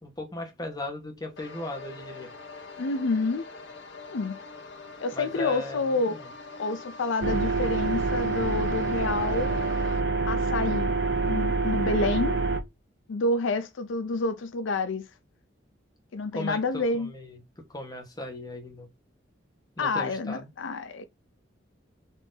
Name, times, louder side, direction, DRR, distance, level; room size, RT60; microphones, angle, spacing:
voice 1, 0.0-2.3 5.1-6.3 16.3-17.4 17.7-18.9 19.8-20.5, left 2 dB, 20° left, 1.2 m, -37 dB
sound 1, 1.4-10.0, left 4 dB, 65° left, 1.0 m, -44 dB
voice 2, 2.8-3.4 4.1-4.4 5.0-6.2 6.6-9.6 10.3-10.9 11.2-12.4 13.1-15.1 16.1-17.1 19.8-21.0, left 3 dB, 80° left, 0.5 m, -28 dB
sound 2, 7.2-12.6, right 3 dB, 55° right, 0.6 m, -26 dB
4.3 x 2.9 x 3.9 m
head